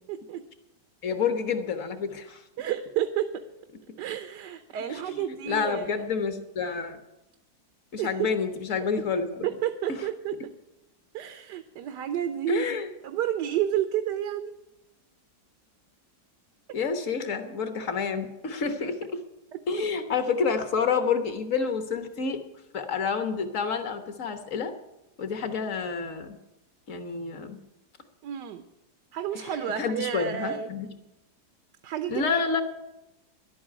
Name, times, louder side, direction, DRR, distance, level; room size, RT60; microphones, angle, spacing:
voice 1, 0.1-0.4 2.6-3.3 4.0-6.0 8.0-8.1 9.4-10.3 11.1-12.8 13.0-14.5 19.5-19.6 28.2-28.6 29.1-30.7 31.8-32.4, right 10 dB, 85° right, 9 dB, 1.4 m, -30 dB
voice 2, 1.0-2.4 4.9-7.0 7.9-9.5 12.5-12.9 16.7-19.2 19.7-22.4 22.7-24.7 25.2-26.4 26.9-27.6 29.3-29.5 29.8-30.9 32.1-32.6, left 5 dB, 50° left, 8 dB, 1.6 m, -29 dB
11.5 x 8.7 x 9.6 m, 0.95 s
omnidirectional pair, 1.8 m